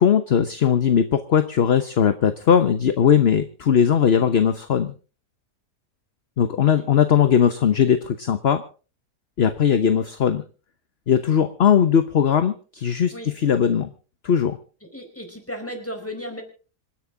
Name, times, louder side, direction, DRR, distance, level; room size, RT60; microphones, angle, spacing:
voice 1, 0.0-4.9 6.4-8.6 9.4-10.4 11.1-13.9 14.2-14.6, left 8 dB, 45° left, 11 dB, 1.0 m, -19 dB
voice 2, 14.9-16.4, equal, 10° left, 4 dB, 4.6 m, -35 dB
27.0 x 10.5 x 3.8 m, 0.36 s
omnidirectional pair, 1.7 m